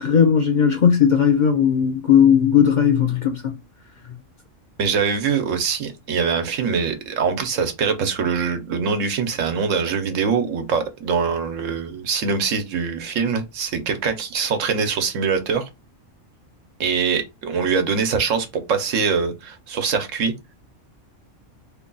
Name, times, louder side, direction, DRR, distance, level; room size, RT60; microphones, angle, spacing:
voice 1, 0.0-3.6, left 8 dB, 50° left, 0.5 m, -17 dB
voice 2, 4.8-15.7 16.8-20.3, right 5 dB, 85° right, 1.2 m, -23 dB
3.2 x 2.3 x 3.8 m
omnidirectional pair, 1.3 m